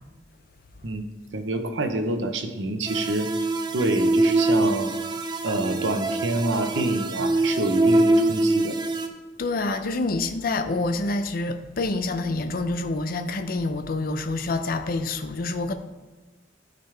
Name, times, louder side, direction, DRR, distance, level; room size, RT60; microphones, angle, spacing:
voice 1, 1.3-3.3 3.7-4.9 5.4-8.8, right 2 dB, 75° right, 0.8 m, -27 dB
sound 1, 2.9-9.1, right 2 dB, 25° right, 0.5 m, -23 dB
voice 2, 9.4-15.8, left 2 dB, 50° left, 0.5 m, -27 dB
12.0 x 5.1 x 3.4 m
head